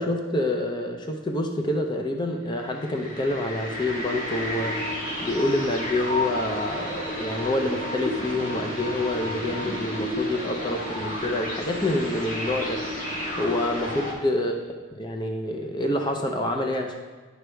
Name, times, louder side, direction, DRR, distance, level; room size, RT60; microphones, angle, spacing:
voice 1, 0.0-5.0 5.2-12.8 13.4-14.5 15.0-16.9, left 1 dB, 25° left, 3 dB, 0.5 m, -27 dB
sound 1, 2.5-14.1, left 1 dB, 40° left, 1.4 m, -31 dB
9.3 x 6.2 x 3.3 m, 1.4 s
head